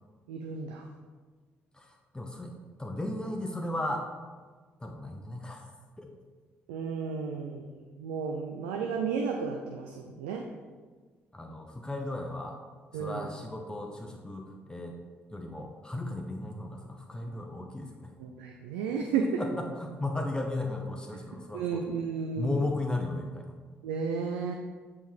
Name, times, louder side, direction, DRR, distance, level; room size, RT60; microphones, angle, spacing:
voice 1, 0.3-0.8 6.7-10.4 12.9-13.3 18.2-19.4 21.5-22.6 23.8-24.5, right 5 dB, 70° right, 2 dB, 0.4 m, -33 dB
voice 2, 1.7-2.5 2.8-4.1 4.8-5.7 6.0-6.1 11.3-12.6 12.9-15.0 15.3-18.1 19.4-21.9 22.4-23.6, left 2 dB, 15° left, 2 dB, 0.9 m, -35 dB
7.2 x 3.6 x 4.6 m, 1.4 s
figure-of-eight pair, 40°, 6 cm